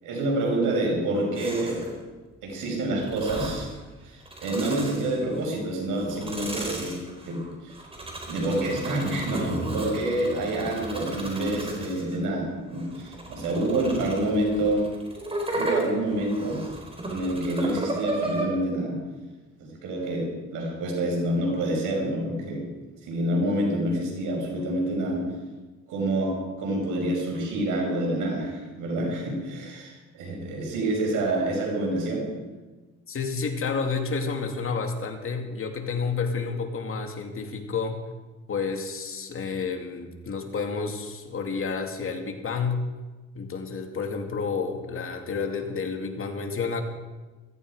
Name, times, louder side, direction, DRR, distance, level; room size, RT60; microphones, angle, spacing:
voice 1, 0.0-1.8 2.4-3.7 4.0-7.0 7.3-7.8 8.3-14.9 15.5-16.6 17.1-19.0 19.6-22.6 23.0-25.2 25.9-32.3, right 1 dB, 85° right, -1 dB, 5.6 m, -27 dB
sound 1, 1.4-2.0 3.0-3.8 4.2-5.5 5.9-12.2 12.7-18.4, right 1 dB, 20° right, 4.4 m, -34 dB
voice 2, 33.1-38.0 38.5-42.8 43.3-46.8, left 5 dB, 45° left, 4 dB, 2.5 m, -30 dB
16.5 x 14.5 x 5.0 m, 1.2 s
cardioid pair, 90°, 30 cm